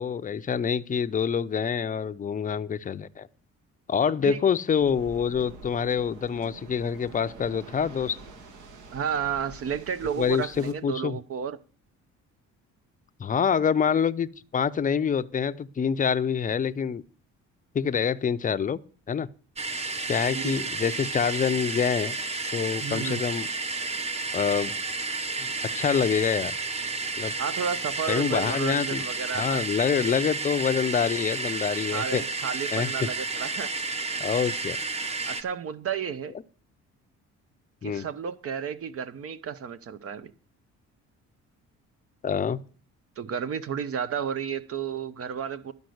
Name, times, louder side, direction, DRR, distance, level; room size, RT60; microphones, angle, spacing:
voice 1, 0.0-3.3 3.9-8.2 10.2-11.2 13.2-17.0 17.7-18.8 19.1-19.3 20.1-22.2 22.5-23.5 24.3-24.7 25.6-26.5 27.2-27.3 28.1-29.0 29.3-32.2 32.7-33.1 34.2-34.8 37.8-38.0 42.2-42.6, left 7 dB, 25° left, 0.5 m, -26 dB
Waves surf, 4.8-10.7, right 3 dB, 70° right, 1.8 m, -46 dB
voice 2, 8.9-11.6 20.3-20.9 22.8-23.2 27.4-29.6 31.9-33.7 35.3-36.3 37.8-40.3 43.2-45.7, right 7 dB, 50° right, 0.7 m, -32 dB
sound 1, 19.6-35.4, right 3 dB, 20° right, 0.9 m, -31 dB
12.0 x 5.3 x 7.8 m
cardioid pair, 105°, 30 cm